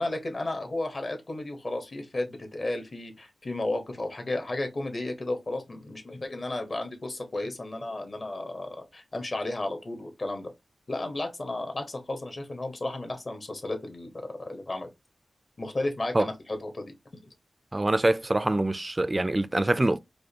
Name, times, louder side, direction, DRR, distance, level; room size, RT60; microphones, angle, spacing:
voice 1, 0.0-10.5 10.9-14.1 14.5-14.9 15.6-16.9, left 2 dB, 45° left, 1.1 m, -33 dB
voice 2, 17.7-20.0, right 2 dB, 25° right, 0.3 m, -24 dB
4.8 x 2.2 x 2.8 m
cardioid pair, 65°, 0 cm